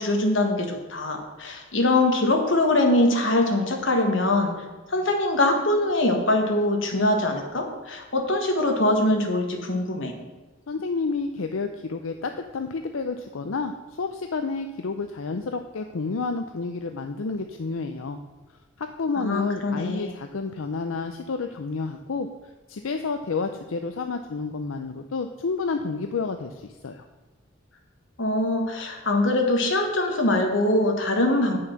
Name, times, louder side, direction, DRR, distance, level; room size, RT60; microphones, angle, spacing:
voice 1, 0.0-4.5 4.9-10.1 19.2-20.1 28.2-31.6, left 1 dB, 65° left, 3 dB, 1.6 m, -23 dB
voice 2, 10.7-18.2 18.8-22.3 22.7-27.1, left 4 dB, 85° left, 6 dB, 0.6 m, -30 dB
9.4 x 6.3 x 5.8 m, 1.2 s
head